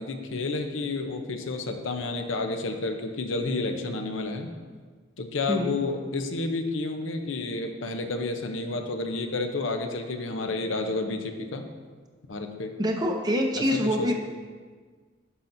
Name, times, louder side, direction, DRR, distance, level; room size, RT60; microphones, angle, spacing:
voice 1, 0.0-4.5 5.2-11.7 12.3-12.7 13.6-14.1, left 3 dB, 70° left, 5 dB, 0.7 m, -30 dB
voice 2, 12.8-14.1, equal, 20° right, 2 dB, 0.6 m, -25 dB
11.0 x 5.7 x 2.6 m, 1.5 s
head